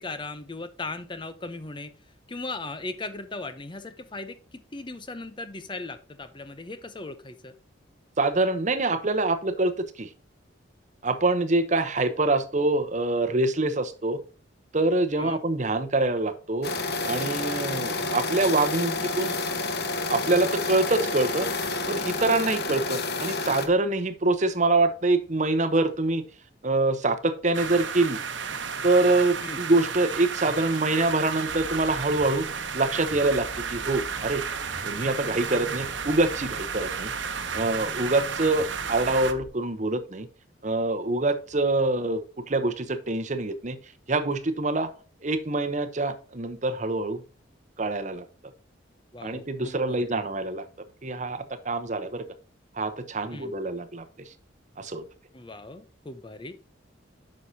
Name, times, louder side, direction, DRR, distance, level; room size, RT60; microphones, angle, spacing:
voice 1, 0.0-1.9 2.3-7.5 15.2-15.4 29.4-29.6 49.1-50.2 53.3-53.5 55.3-56.5, left 3 dB, 25° left, 10 dB, 0.7 m, -38 dB
voice 2, 8.2-10.1 11.0-14.2 14.7-16.7 17.0-19.3 20.1-21.5 21.9-26.2 26.6-28.2 28.8-32.5 32.7-34.4 34.8-37.1 37.5-40.3 40.6-43.8 44.1-44.9 45.2-47.2 47.8-48.3 49.2-50.7 51.0-52.2 52.7-54.3 54.8-55.0, right 2 dB, 40° right, 9 dB, 0.8 m, -25 dB
sound 1, 16.6-23.7, left 3 dB, 55° left, 1.2 m, -29 dB
sound 2, 27.5-39.3, right 6 dB, 75° right, 1.0 m, -33 dB
sound 3, 31.5-39.5, equal, ahead, 2.2 m, -45 dB
9.9 x 6.5 x 2.8 m, 0.37 s
head